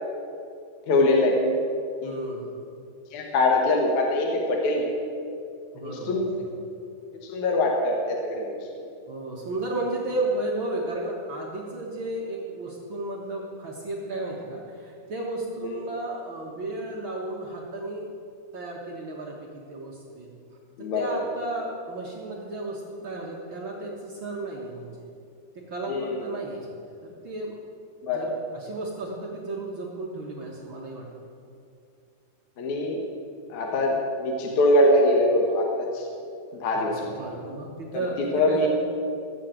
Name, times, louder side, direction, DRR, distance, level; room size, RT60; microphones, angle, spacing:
voice 1, 0.9-1.4 2.0-2.1 3.1-4.9 5.8-6.4 7.2-8.6 15.6-15.8 20.8-21.2 25.9-26.2 28.0-28.3 32.6-33.0 33.5-36.1 36.6-37.2 37.9-38.1 38.3-38.7, left 1 dB, 60° left, 0 dB, 2.2 m, -23 dB
voice 2, 2.0-2.6 5.7-6.5 9.1-18.1 18.5-20.3 20.8-24.9 25.7-27.6 28.1-31.0 36.7-38.7, right 2 dB, 65° right, -3 dB, 1.2 m, -33 dB
16.0 x 7.4 x 8.9 m, 2.5 s
omnidirectional pair, 4.6 m